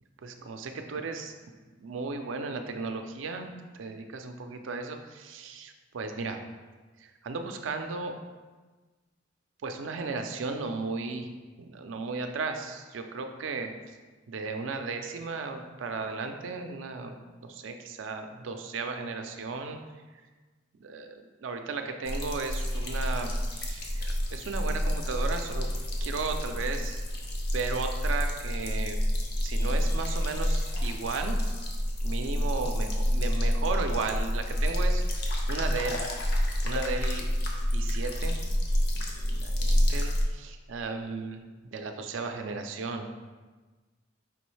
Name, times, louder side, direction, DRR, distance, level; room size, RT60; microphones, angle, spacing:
voice 1, 0.2-1.3 1.8-6.4 7.0-8.1 9.6-11.3 11.6-13.7 14.3-19.8 20.8-25.7 26.0-27.0 27.5-29.0 29.4-31.4 32.0-35.0 35.5-36.0 36.6-37.3 37.7-38.4 38.9-43.1, right 4 dB, 80° right, 6 dB, 0.4 m, -35 dB
sound 1, 22.0-40.2, equal, 55° left, 0.6 m, -28 dB
4.9 x 3.0 x 3.2 m, 1.3 s
head